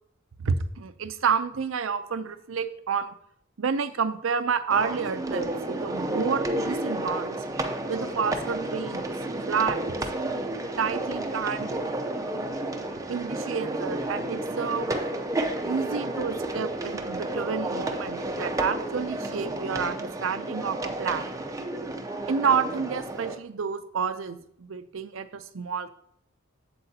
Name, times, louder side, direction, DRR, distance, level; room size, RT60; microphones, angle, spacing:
voice 1, 0.4-3.1 3.6-7.4 7.9-9.1 9.5-10.0 10.8-11.9 13.1-14.9 15.6-21.3 22.3-25.9, right 6 dB, 80° right, 11 dB, 0.5 m, -29 dB
sound 1, 4.7-23.4, right 1 dB, 15° right, 0.6 m, -31 dB
8.0 x 7.5 x 2.8 m, 0.67 s
head